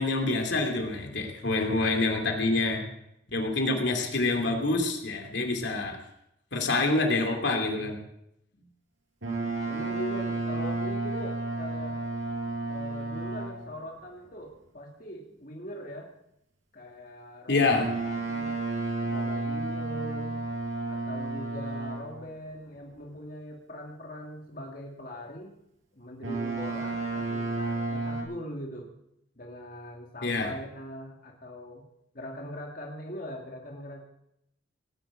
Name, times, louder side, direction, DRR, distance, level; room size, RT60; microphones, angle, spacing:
voice 1, 0.0-2.8 3.3-6.0 6.5-8.0 17.5-17.9 30.2-30.5, left 3 dB, 65° left, 3 dB, 2.8 m, -26 dB
Boat Water vehicle, 9.2-13.7 17.7-22.2 26.2-28.2, right 3 dB, 80° right, 5.8 m, -32 dB
voice 2, 9.7-12.0 12.7-16.1 16.7-17.9 18.2-18.5 19.1-20.4 20.9-25.6 25.9-28.9 29.4-31.8 32.1-34.0, equal, 45° left, -1 dB, 2.6 m, -41 dB
19.0 x 7.8 x 8.9 m, 0.80 s
head